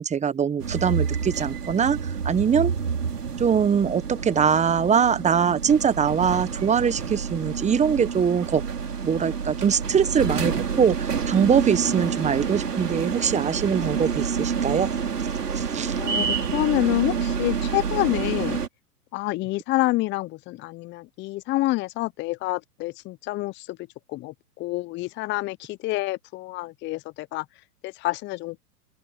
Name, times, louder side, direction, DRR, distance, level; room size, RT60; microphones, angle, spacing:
voice 1, 0.0-2.0 2.2-2.7 3.4-8.6 9.0-10.5 10.8-14.9 15.5-15.9, right 7 dB, 15° right, 1.4 m, -22 dB
sound 1, 0.6-18.7, right 6 dB, 85° right, 5.2 m, -28 dB
voice 2, 11.9-12.7 16.0-18.6 19.1-23.8 24.1-27.5 27.8-28.6, left 19 dB, 25° left, 0.8 m, -28 dB
open air
hypercardioid pair, 110°, 46 cm